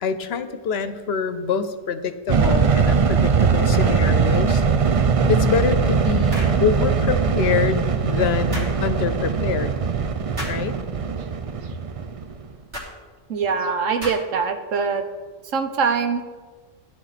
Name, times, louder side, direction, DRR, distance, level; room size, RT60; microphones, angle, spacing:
voice 1, 0.0-4.6 5.3-9.7 10.5-10.8, left 6 dB, 60° left, 11 dB, 0.9 m, -25 dB
sound 1, 2.3-12.5, right 5 dB, 45° right, 0.4 m, -20 dB
sound 2, 6.3-6.6 8.5-8.8 10.4-10.6 12.7-12.9 14.0-14.4, equal, 65° right, 3.1 m, -33 dB
voice 2, 13.3-15.0 15.5-16.2, right 5 dB, 85° right, 6 dB, 1.3 m, -23 dB
14.0 x 10.0 x 4.1 m, 1.5 s
omnidirectional pair, 1.3 m